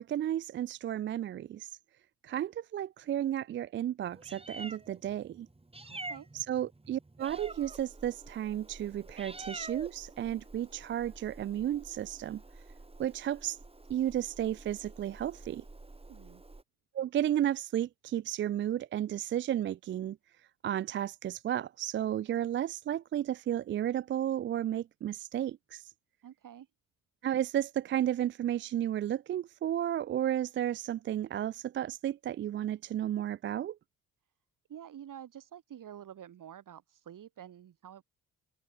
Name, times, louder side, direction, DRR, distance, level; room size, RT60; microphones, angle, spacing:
voice 1, 0.0-1.8 2.2-5.5 6.3-12.4 13.0-13.6 13.9-15.6 16.9-20.2 20.6-25.9 27.2-33.8, right 11 dB, 30° right, 0.4 m, -33 dB
Meow, 4.1-16.6, right 2 dB, 15° right, 2.9 m, -48 dB
voice 2, 5.8-6.3 16.1-16.4 26.2-26.7 34.7-38.0, right 10 dB, 50° right, 2.6 m, -48 dB
open air
hypercardioid pair, 50°, 40 cm